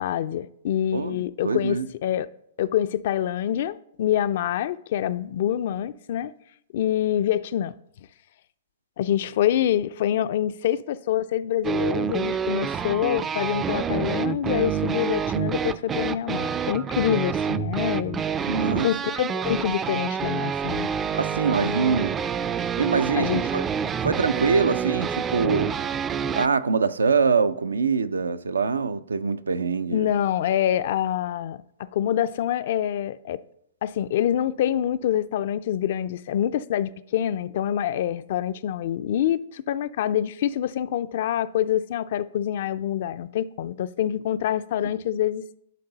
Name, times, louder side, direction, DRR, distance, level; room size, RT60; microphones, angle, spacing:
voice 1, 0.0-2.3 2.6-6.3 6.7-7.7 9.0-18.2 18.8-20.9 21.6-21.8 23.2-23.4 29.9-31.6 31.9-33.4 33.8-45.4, left 11 dB, 60° left, 0.4 m, -26 dB
voice 2, 1.4-1.9 18.5-18.9 21.1-22.2 22.8-23.6 24.0-25.7 26.4-30.1, right 5 dB, 85° right, 0.4 m, -24 dB
sound 1, 11.6-26.5, right 7 dB, 20° right, 0.3 m, -27 dB
10.5 x 3.9 x 3.9 m
hypercardioid pair, 115°, 0 cm